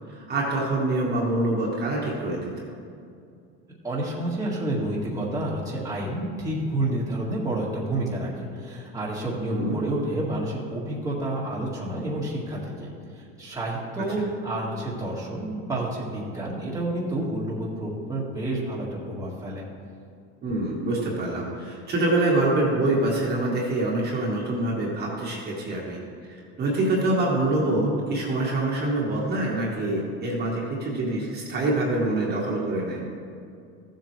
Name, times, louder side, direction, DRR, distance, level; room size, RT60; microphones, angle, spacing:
voice 1, 0.1-2.7 9.5-9.8 20.4-26.0 26.3-33.0, right 2 dB, 30° right, -4 dB, 1.8 m, -25 dB
voice 2, 3.8-19.7, right 1 dB, 10° right, -6 dB, 1.9 m, -29 dB
14.5 x 7.6 x 3.3 m, 2.4 s
cardioid pair, 140°, 31 cm